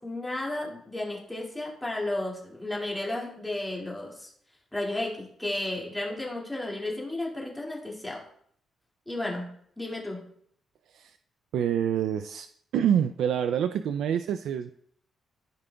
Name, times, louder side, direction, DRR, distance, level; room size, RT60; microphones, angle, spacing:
voice 1, 0.0-4.3 4.7-8.2 9.1-10.3, left 1 dB, 5° left, -3 dB, 2.2 m, -33 dB
voice 2, 11.5-12.5 12.7-14.7, right 9 dB, 85° right, 10 dB, 0.3 m, -26 dB
13.0 x 5.0 x 2.3 m, 0.65 s
cardioid pair, 125°, 0 cm